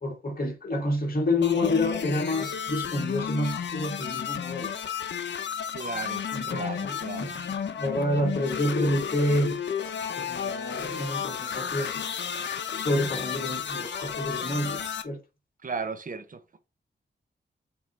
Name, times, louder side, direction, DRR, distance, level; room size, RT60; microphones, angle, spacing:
voice 1, 0.0-4.7 6.3-7.3 7.8-9.6 10.2-12.0 12.7-15.2, left 1 dB, 50° left, 1.9 m, -28 dB
sound 1, 1.4-15.0, left 7 dB, 75° left, 0.8 m, -32 dB
voice 2, 5.7-7.4 8.1-8.3 15.6-16.7, right 4 dB, 45° right, 0.8 m, -36 dB
7.3 x 3.0 x 4.6 m
wide cardioid pair, 110°, 19 cm